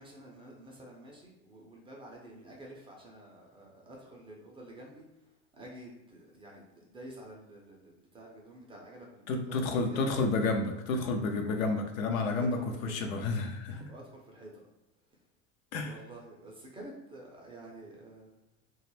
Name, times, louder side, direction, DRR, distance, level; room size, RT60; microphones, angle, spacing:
voice 1, 0.0-10.1 12.3-12.9 13.8-14.7 15.8-18.4, right 1 dB, 15° right, -2 dB, 0.3 m, -49 dB
voice 2, 9.3-13.9 15.7-15.9, left 3 dB, 85° left, 4 dB, 0.6 m, -30 dB
2.2 x 2.0 x 3.1 m, 0.95 s
hypercardioid pair, 105°, 40 cm